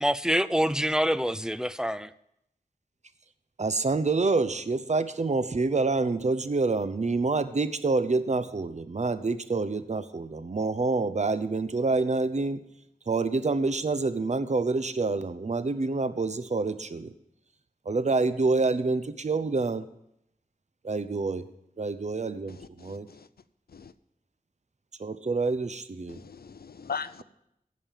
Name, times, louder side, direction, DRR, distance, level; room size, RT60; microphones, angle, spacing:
voice 1, 0.0-2.1, equal, 5° right, 0.5 m, -26 dB
voice 2, 3.6-12.7 13.1-17.1 17.8-19.9 20.8-21.4 21.8-23.1 25.0-26.2, right 3 dB, 50° right, 0.8 m, -27 dB
voice 3, 22.5-23.3 23.7-23.9 26.1-27.2, left 6 dB, 80° left, 0.6 m, -39 dB
16.0 x 5.3 x 7.3 m
wide cardioid pair, 60°, 15 cm